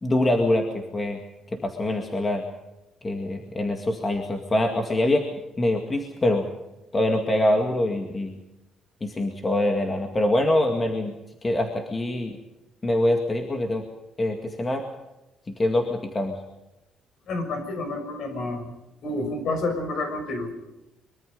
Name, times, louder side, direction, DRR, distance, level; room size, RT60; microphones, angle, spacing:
voice 1, 0.0-1.2 1.5-2.4 3.0-5.2 5.6-6.5 6.9-8.3 9.0-11.1 11.4-12.4 12.8-13.8 14.2-14.8 15.5-16.4, left 1 dB, 15° left, 4 dB, 2.1 m, -24 dB
voice 2, 17.3-18.7 19.0-20.5, left 2 dB, 50° left, 7 dB, 6.3 m, -29 dB
24.0 x 23.5 x 5.3 m, 0.96 s
cardioid pair, 175°, 0 cm